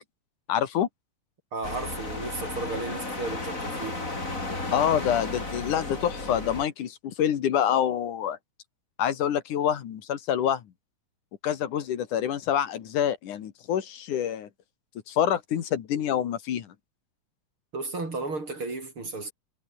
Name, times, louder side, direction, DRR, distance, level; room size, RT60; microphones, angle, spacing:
voice 1, 0.5-0.9 4.7-8.4 9.0-10.6 11.4-14.5 15.1-16.7, left 9 dB, 80° left, 3.3 m, -26 dB
voice 2, 1.5-4.0 17.7-19.3, right 3 dB, 40° right, 6.4 m, -34 dB
sound 1, 1.6-6.7, left 2 dB, 25° left, 5.3 m, -34 dB
omnidirectional pair, 3.5 m